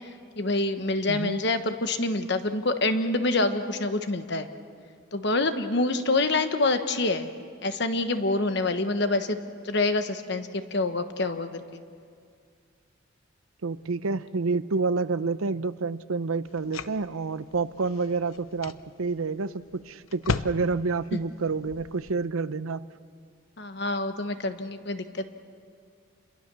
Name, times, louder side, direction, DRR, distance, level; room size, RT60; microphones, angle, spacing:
voice 1, 0.4-4.5 5.1-7.3 7.6-9.4 9.6-11.8 21.1-21.2 23.6-25.2, left 2 dB, 55° left, 8 dB, 1.2 m, -26 dB
voice 2, 1.1-1.4 13.6-22.9, right 4 dB, 85° right, 14 dB, 0.7 m, -29 dB
sound 1, 16.5-22.2, left 4 dB, 85° left, 0.7 m, -37 dB
28.0 x 22.5 x 7.0 m, 2.2 s
head